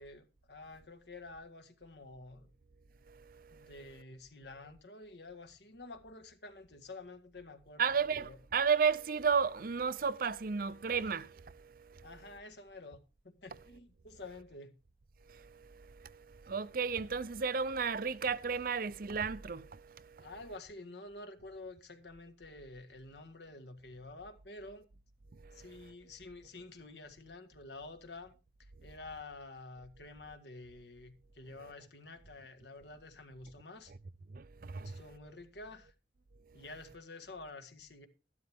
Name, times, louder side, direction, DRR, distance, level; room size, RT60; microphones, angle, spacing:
voice 1, 0.0-2.5 3.5-8.4 12.0-13.0 13.2-14.7 20.2-24.8 25.5-28.3 28.6-33.9 34.8-35.9 36.5-38.1, left 2 dB, 70° left, 1.7 m, -49 dB
voice 2, 3.1-3.7 7.8-12.1 15.3-20.3 25.3-25.9 34.3-35.0 36.5-36.6, right 6 dB, 50° right, 0.6 m, -34 dB
13.0 x 12.0 x 3.5 m
head